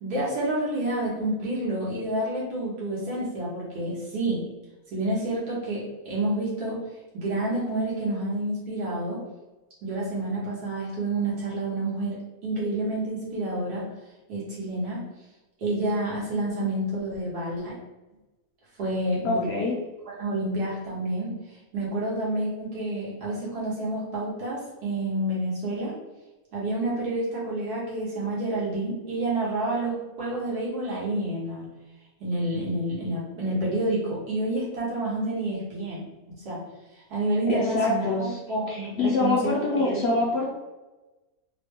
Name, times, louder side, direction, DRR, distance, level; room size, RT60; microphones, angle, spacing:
voice 1, 0.0-4.4 4.9-6.8 7.1-9.2 9.8-12.2 12.4-13.9 14.3-15.0 15.6-17.7 18.8-19.5 20.0-21.3 21.7-25.9 26.5-31.7 32.2-36.0 36.4-36.6 37.1-40.3, right 1 dB, 80° right, -6 dB, 1.8 m, -29 dB
voice 2, 19.2-19.7 37.5-38.4 38.7-40.5, left 3 dB, 60° left, -3 dB, 0.7 m, -25 dB
3.6 x 2.2 x 3.4 m, 1.1 s
omnidirectional pair, 1.6 m